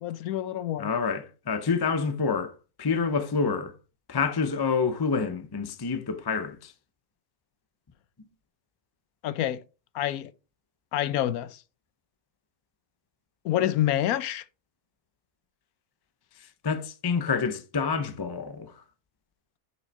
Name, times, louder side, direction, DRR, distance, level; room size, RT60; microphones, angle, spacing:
voice 1, 0.0-0.9 9.2-9.6 9.9-10.3 10.9-11.6 13.4-14.4, left 12 dB, 75° left, 1.0 m, -27 dB
voice 2, 0.8-3.7 4.1-6.7 16.6-18.7, left 5 dB, 30° left, 0.4 m, -28 dB
6.4 x 6.1 x 4.1 m
omnidirectional pair, 1.6 m